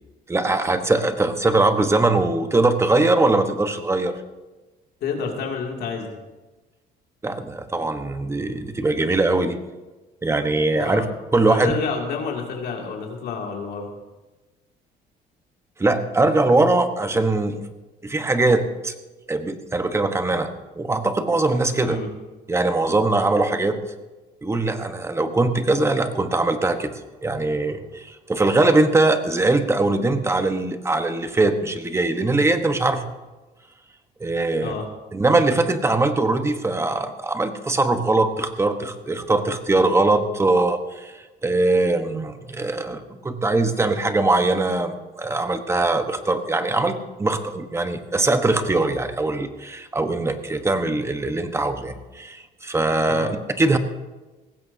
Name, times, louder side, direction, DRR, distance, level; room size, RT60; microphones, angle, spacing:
voice 1, 0.3-4.2 7.2-9.6 10.2-11.1 11.3-11.7 15.8-17.6 18.0-18.9 19.3-20.5 20.8-22.0 22.5-23.8 24.4-26.9 27.2-33.0 34.2-34.8 35.1-41.1 41.4-53.8, right 2 dB, 15° right, 8 dB, 1.2 m, -21 dB
voice 2, 5.0-6.2 10.7-11.0 11.5-13.9 21.8-22.1 34.6-34.9 53.1-53.3, left 5 dB, 70° left, 1 dB, 2.5 m, -29 dB
18.5 x 15.5 x 2.8 m, 1.2 s
cardioid pair, 110°, 17 cm